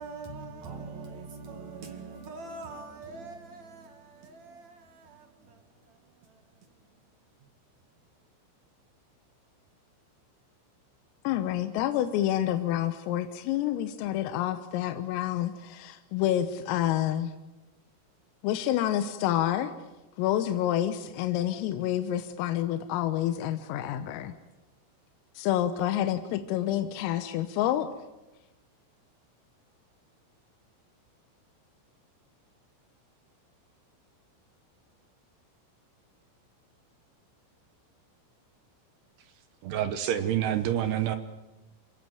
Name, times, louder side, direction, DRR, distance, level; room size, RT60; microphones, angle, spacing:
voice 1, 0.0-5.6 5.9-6.0 6.3-6.4, right 3 dB, 50° right, 2.4 m, -43 dB
voice 2, 11.3-17.3 18.4-19.7 20.2-24.3 25.4-27.9, left 12 dB, 85° left, 3.7 m, -28 dB
voice 3, 39.6-41.2, right 10 dB, 75° right, 2.5 m, -27 dB
28.0 x 17.5 x 9.3 m
omnidirectional pair, 5.9 m